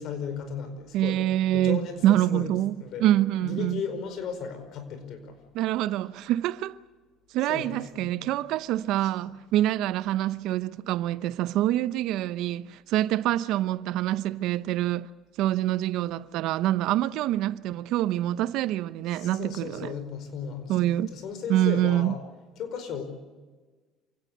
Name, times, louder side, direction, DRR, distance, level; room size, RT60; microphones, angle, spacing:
voice 1, 0.0-1.2 1.5-2.5 2.8-3.1 3.4-5.4 7.5-8.2 9.2-9.3 19.1-22.2 22.6-23.0, left 6 dB, 65° left, 4.9 m, -35 dB
voice 2, 0.9-3.8 5.5-6.8 7.3-15.1 15.4-19.9 20.7-21.1 21.5-22.1, right 13 dB, 70° right, 0.8 m, -26 dB
27.5 x 17.5 x 8.1 m
supercardioid pair, 80°, 0 cm